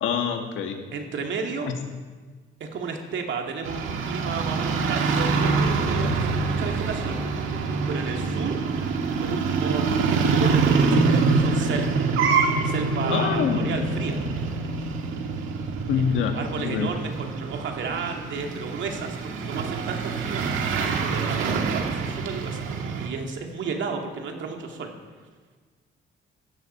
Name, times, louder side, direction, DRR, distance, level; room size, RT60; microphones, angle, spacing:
voice 1, 0.0-0.8 13.1-13.7 15.9-16.9, left 7 dB, 80° left, 4 dB, 1.8 m, -26 dB
voice 2, 0.9-1.7 2.6-7.2 7.9-8.6 9.2-12.0 12.6-14.2 15.9-16.0 16.3-20.4 21.1-22.7 23.0-24.9, right 5 dB, 70° right, 2 dB, 2.3 m, -33 dB
sound 1, 3.6-23.1, right 4 dB, 85° right, 1.7 m, -25 dB
15.5 x 12.5 x 4.5 m, 1.4 s
cardioid pair, 90°, 20 cm